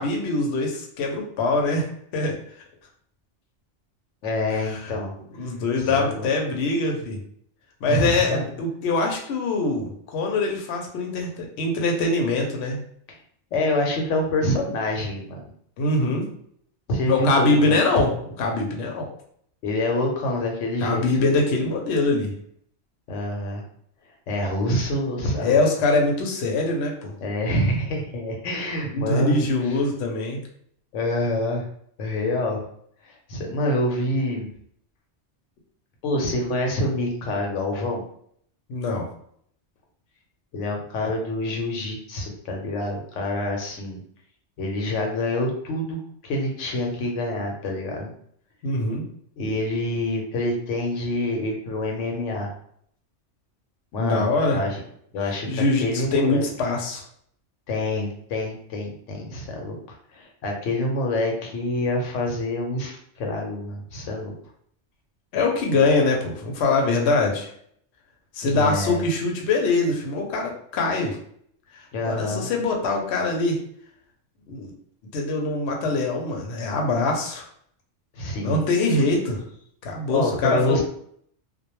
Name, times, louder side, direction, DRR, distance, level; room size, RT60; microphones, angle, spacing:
voice 1, 0.0-1.9 2.1-2.4 4.6-4.9 5.3-7.2 7.8-12.8 15.8-16.3 17.1-18.1 18.4-19.1 20.8-22.3 25.4-27.1 28.9-30.4 38.7-39.1 48.6-49.1 54.0-54.6 55.2-57.0 65.3-67.5 68.3-71.2 72.0-73.6 74.5-74.7 75.1-77.4 78.4-79.4 79.8-80.8, left 3 dB, 70° left, 1 dB, 0.8 m, -23 dB
voice 2, 4.2-5.1 5.8-6.3 7.9-8.4 13.5-15.5 16.9-17.8 19.6-21.0 23.1-23.6 24.3-25.6 27.2-29.5 30.9-31.7 32.0-32.7 33.3-34.5 36.0-38.0 40.5-44.0 44.6-48.1 49.4-52.5 53.9-54.8 55.1-56.4 57.7-59.8 60.1-64.3 68.4-69.0 71.9-72.5 78.2-78.6 80.1-80.8, left 1 dB, 90° left, 1 dB, 1.0 m, -26 dB
2.2 x 2.1 x 2.9 m, 0.64 s
omnidirectional pair, 1.2 m